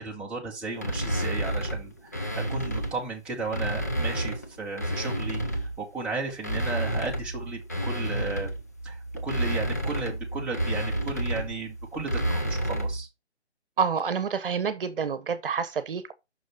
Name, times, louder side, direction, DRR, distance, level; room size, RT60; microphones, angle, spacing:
voice 1, 0.0-5.4 5.8-8.5 8.8-9.0 9.2-13.1, right 3 dB, 5° right, 1.1 m, -34 dB
sound 1, 0.8-3.0 3.4-5.8 6.3-13.0, right 1 dB, 15° left, 0.4 m, -30 dB
voice 2, 13.8-16.1, right 6 dB, 55° right, 1.1 m, -28 dB
6.3 x 6.0 x 4.2 m
figure-of-eight pair, 150°, 33 cm